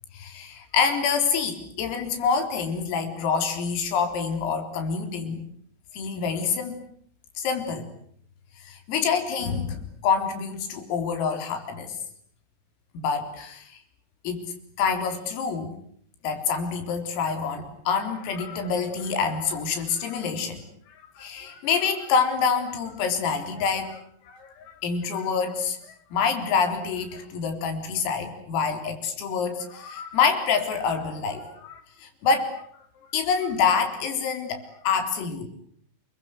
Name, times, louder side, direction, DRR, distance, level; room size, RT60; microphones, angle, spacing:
voice 1, 0.1-5.4 5.9-6.8 7.4-7.9 8.6-12.0 12.9-13.8 14.2-15.8 16.2-25.8 26.1-32.6 33.1-35.5, left 6 dB, 85° left, 6 dB, 6.5 m, -27 dB
29.5 x 23.0 x 8.2 m, 0.63 s
omnidirectional pair, 5.9 m